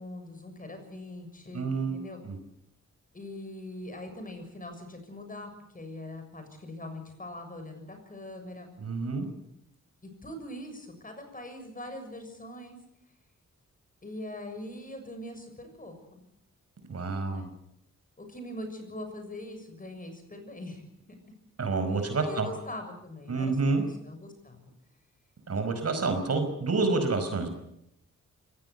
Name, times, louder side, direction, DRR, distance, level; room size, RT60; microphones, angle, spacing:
voice 1, 0.0-2.2 3.1-8.7 10.2-12.8 14.0-15.9 17.2-17.5 18.2-21.2 21.9-23.6 23.8-24.7, left 1 dB, 25° left, 6 dB, 6.8 m, -42 dB
voice 2, 1.5-1.9 2.2-2.4 8.8-9.2 16.9-17.5 21.6-22.5 23.3-23.8 25.5-27.5, right 3 dB, 55° right, 8 dB, 5.0 m, -28 dB
25.0 x 17.5 x 8.2 m, 0.78 s
wide cardioid pair, 100°, 30 cm